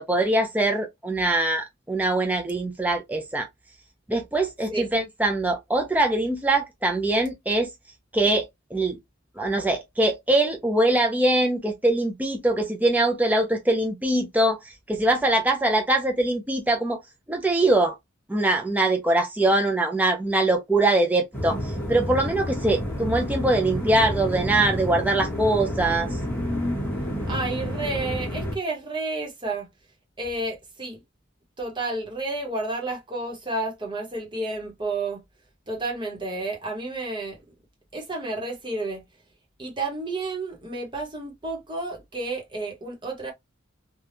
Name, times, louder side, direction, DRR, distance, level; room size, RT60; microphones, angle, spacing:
voice 1, 0.0-3.5 4.1-7.7 8.1-8.5 8.7-9.0 9.4-17.0 17.3-18.0 18.3-26.1, right 2 dB, 10° right, 0.5 m, -23 dB
sound 1, 21.3-28.5, equal, 10° left, 1.2 m, -29 dB
voice 2, 27.3-29.7 30.2-31.0 31.6-35.2 35.7-37.4 37.9-39.0 39.6-43.3, right 2 dB, 25° right, 1.1 m, -31 dB
3.4 x 2.3 x 2.6 m
head